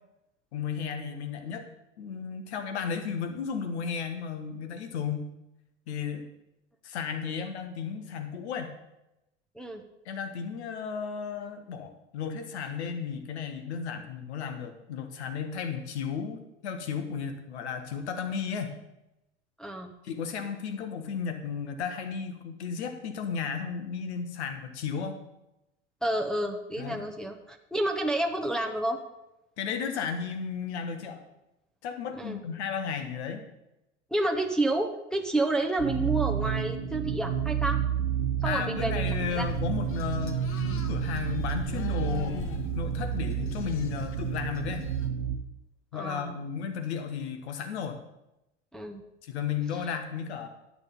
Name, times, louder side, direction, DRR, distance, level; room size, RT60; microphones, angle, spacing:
voice 1, 0.5-1.7 2.0-5.3 5.9-6.3 6.8-8.7 10.0-18.8 20.0-25.2 26.8-27.0 29.6-31.2 31.8-33.4 38.4-42.5 42.7-44.9 45.9-48.0 49.2-50.5, left 6 dB, 70° left, 7 dB, 1.4 m, -34 dB
voice 2, 19.6-19.9 26.0-29.0 32.1-32.4 34.1-37.8 38.4-39.0 39.3-39.5 45.9-46.4 48.7-49.0, right 2 dB, ahead, 1 dB, 1.0 m, -29 dB
sound 1, 35.8-45.4, right 9 dB, 35° right, 1.6 m, -30 dB
sound 2, 39.1-45.1, left 5 dB, 35° left, 1.1 m, -39 dB
11.0 x 6.8 x 5.4 m, 0.91 s
figure-of-eight pair, 75°, 35 cm